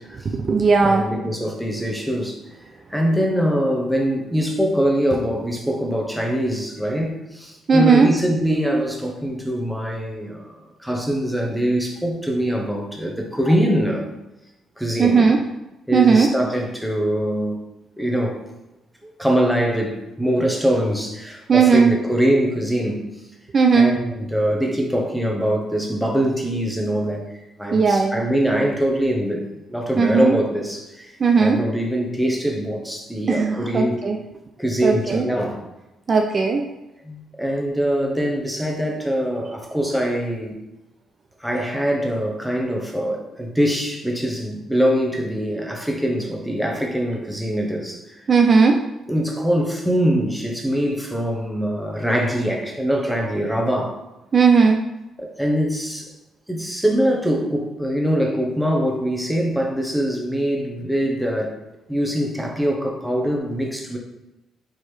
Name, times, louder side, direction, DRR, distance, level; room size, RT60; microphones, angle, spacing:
voice 1, 0.2-1.1 7.7-8.1 15.0-15.4 15.9-16.3 21.5-21.9 23.5-23.9 27.7-28.2 30.0-30.4 31.2-31.6 33.3-34.2 34.8-35.3 36.1-36.6 48.3-48.8 54.3-54.8, right 5 dB, 40° right, 3 dB, 0.3 m, -16 dB
voice 2, 0.8-2.4 2.9-14.1 14.8-15.3 15.9-17.6 18.0-18.4 19.0-23.1 23.7-34.1 34.6-35.6 37.0-40.5 41.4-48.2 49.1-54.0 55.2-56.1 56.5-61.5 61.9-64.0, equal, ahead, 1 dB, 0.8 m, -23 dB
4.4 x 2.9 x 3.3 m, 0.96 s
cardioid pair, 90°, 0 cm